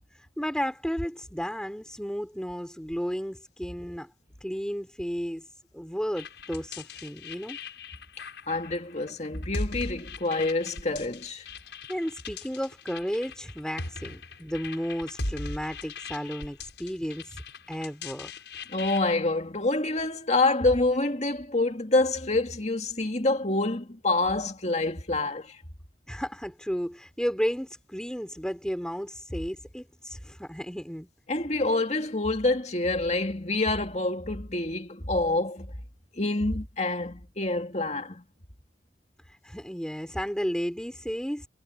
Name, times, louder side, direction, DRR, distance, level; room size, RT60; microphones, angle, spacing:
voice 1, 0.1-4.1 4.4-5.5 5.7-7.6 11.9-17.4 17.7-18.3 26.1-31.1 39.2-41.5, equal, 5° left, 4.2 m, -33 dB
sound 1, 6.2-19.1, left 3 dB, 80° left, 5.7 m, -39 dB
voice 2, 8.5-11.4 18.7-25.6 31.3-35.7 36.1-38.2, left 2 dB, 40° left, 2.4 m, -27 dB
head